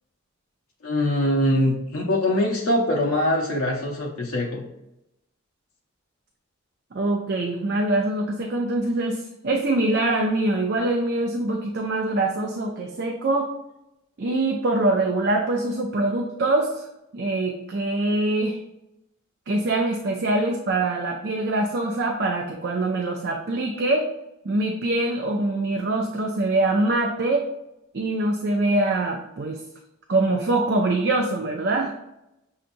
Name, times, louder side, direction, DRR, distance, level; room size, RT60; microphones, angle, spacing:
voice 1, 0.8-4.6, left 1 dB, 85° left, -2 dB, 0.6 m, -23 dB
voice 2, 6.9-13.5 14.2-16.9 17.1-18.6 19.5-24.1 24.4-27.5 27.9-29.6 30.1-31.9, right 2 dB, 50° right, 1 dB, 0.5 m, -24 dB
6.4 x 2.8 x 2.6 m, 0.85 s
head